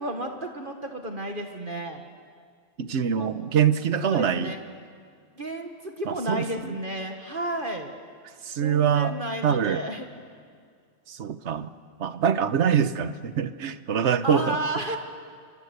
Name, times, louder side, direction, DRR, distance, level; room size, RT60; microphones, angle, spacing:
voice 1, 0.0-2.0 3.1-3.3 4.0-4.6 5.4-7.9 8.6-10.1 14.2-15.0, right 1 dB, 40° right, 4 dB, 1.8 m, -32 dB
voice 2, 2.8-4.5 6.1-6.7 8.4-9.1 9.4-9.8 11.1-11.7 12.0-14.6, right 8 dB, 60° right, 12 dB, 1.2 m, -24 dB
28.5 x 24.0 x 8.1 m, 2.1 s
omnidirectional pair, 1.4 m